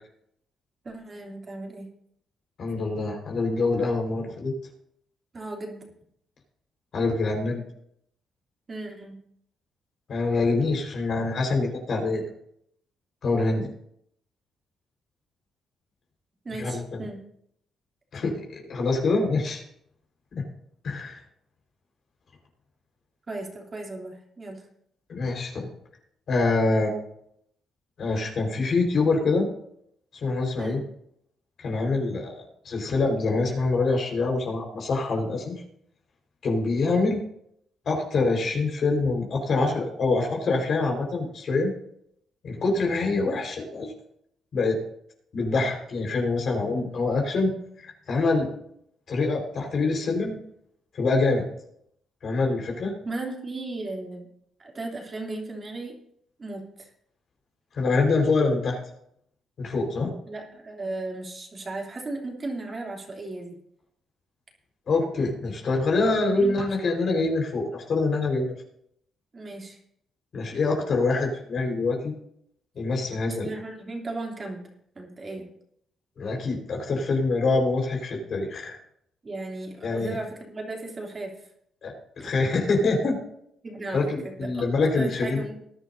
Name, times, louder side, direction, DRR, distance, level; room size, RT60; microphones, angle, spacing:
voice 1, 0.8-1.9 5.3-5.8 8.7-9.2 16.4-17.2 23.3-24.6 30.6-30.8 53.0-54.3 54.6-55.9 56.4-56.9 60.3-63.6 66.3-66.9 69.3-69.8 73.3-74.6 74.9-75.5 79.2-81.5 82.2-82.3 83.6-84.6 84.9-85.6, right 2 dB, 35° right, 0 dB, 3.0 m, -36 dB
voice 2, 2.6-4.5 6.9-7.6 10.1-12.2 13.2-13.7 16.6-17.0 18.1-19.6 20.3-20.4 20.8-21.2 25.1-25.7 26.3-27.0 28.0-29.5 30.2-30.8 31.6-35.6 36.4-37.2 37.8-41.7 42.4-43.9 44.5-44.8 45.3-47.5 47.8-48.5 49.1-50.3 50.9-51.4 52.2-52.9 57.7-58.8 59.6-60.1 64.9-68.5 70.3-72.1 72.7-73.5 76.2-78.8 79.8-80.2 81.8-83.2 83.9-85.4, left 3 dB, 55° left, 0 dB, 4.5 m, -25 dB
20.0 x 11.0 x 2.7 m, 0.72 s
cardioid pair, 90°, 0 cm